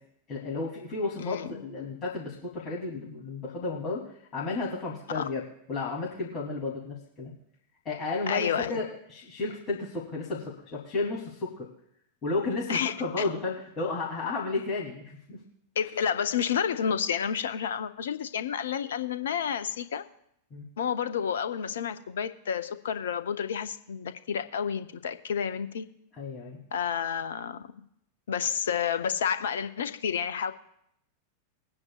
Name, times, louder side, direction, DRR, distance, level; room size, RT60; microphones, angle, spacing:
voice 1, 0.3-4.0 4.3-5.4 5.7-7.3 7.8-11.7 12.2-15.4 20.5-20.6 26.2-26.6, left 3 dB, 30° left, -5 dB, 3.2 m, -33 dB
voice 2, 1.2-1.6 5.1-5.3 8.3-8.8 12.7-13.2 15.8-20.0 20.8-25.9 26.7-27.6 28.3-30.5, left 7 dB, 65° left, 11 dB, 0.7 m, -30 dB
22.0 x 9.7 x 2.5 m, 0.73 s
figure-of-eight pair, 90°, 0 cm